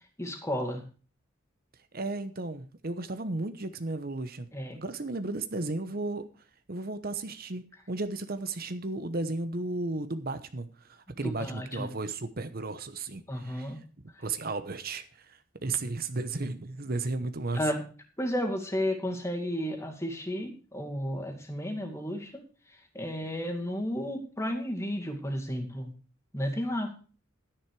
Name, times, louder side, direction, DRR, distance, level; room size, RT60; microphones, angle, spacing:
voice 1, 0.2-0.8 4.5-4.8 11.2-11.9 13.3-13.8 17.5-17.8 18.2-22.4 22.9-25.9 26.3-26.9, equal, 15° left, 3 dB, 2.3 m, -32 dB
voice 2, 1.9-4.5 4.8-6.3 6.7-13.8 14.2-17.7, right 3 dB, 45° right, 10 dB, 1.0 m, -34 dB
12.0 x 10.5 x 4.8 m, 0.37 s
head